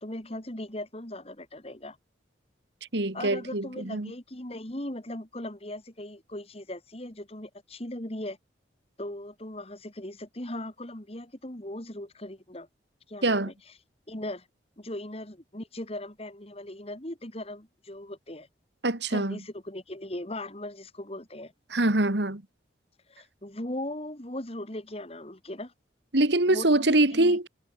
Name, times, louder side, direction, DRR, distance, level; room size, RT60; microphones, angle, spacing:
voice 1, 0.0-2.0 3.1-8.4 9.0-12.7 13.1-13.5 14.1-14.5 14.8-18.5 19.1-21.5 23.1-25.7 26.5-27.4, left 1 dB, 30° left, 2.2 m, -38 dB
voice 2, 2.9-4.1 13.2-13.5 18.8-19.4 21.7-22.4 26.1-27.5, right 2 dB, 65° right, 2.0 m, -24 dB
head